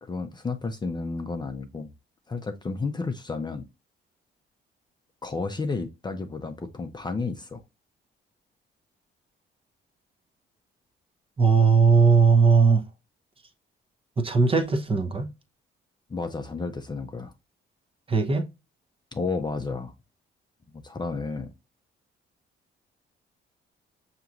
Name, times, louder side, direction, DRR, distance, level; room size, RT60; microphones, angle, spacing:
voice 1, 0.0-1.9 2.3-3.6 5.2-7.6 16.1-17.3 19.1-19.9 20.7-21.5, left 4 dB, 20° left, 0.5 m, -32 dB
voice 2, 11.4-12.8 14.2-15.3 18.1-18.5, right 5 dB, 30° right, 0.7 m, -19 dB
5.6 x 2.9 x 2.4 m
cardioid pair, 90°, 20 cm